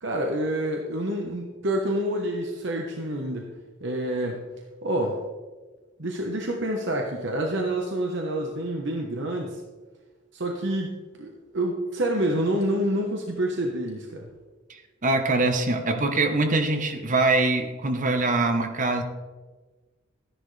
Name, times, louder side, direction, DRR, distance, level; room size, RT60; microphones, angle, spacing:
voice 1, 0.0-3.5 3.8-4.4 4.8-5.2 6.0-9.6 10.3-14.3, right 1 dB, 65° right, 1 dB, 1.1 m, -28 dB
voice 2, 14.7-19.0, right 2 dB, 40° right, 6 dB, 1.0 m, -23 dB
13.0 x 10.5 x 3.3 m, 1.3 s
head